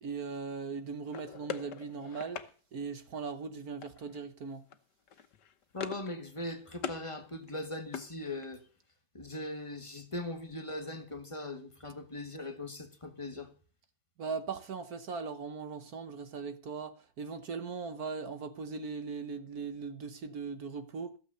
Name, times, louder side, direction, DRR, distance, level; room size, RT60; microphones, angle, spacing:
voice 1, 0.0-4.7 14.2-21.2, right 5 dB, 55° right, 1.5 m, -39 dB
sound 1, 1.1-2.5 3.8-4.2 4.5-4.8 5.1-6.1 6.4-7.0 7.4-8.7, left 8 dB, 65° left, 1.7 m, -42 dB
voice 2, 5.7-8.6 9.1-13.5, left 1 dB, 15° left, 1.5 m, -40 dB
15.5 x 7.8 x 6.8 m
omnidirectional pair, 2.1 m